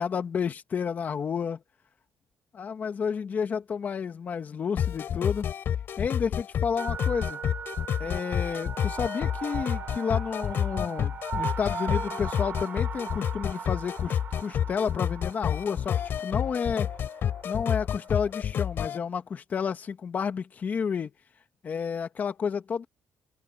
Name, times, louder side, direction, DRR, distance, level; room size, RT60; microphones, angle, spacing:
voice 1, 0.0-1.6 2.5-5.5 6.0-7.4 8.0-16.9 17.4-21.1 21.6-22.9, left 6 dB, 40° left, 1.8 m, -31 dB
sound 1, 4.8-19.0, left 9 dB, 60° left, 4.4 m, -29 dB
sound 2, 6.8-18.4, right 7 dB, 45° right, 3.7 m, -39 dB
open air
cardioid pair, 125°, 4 cm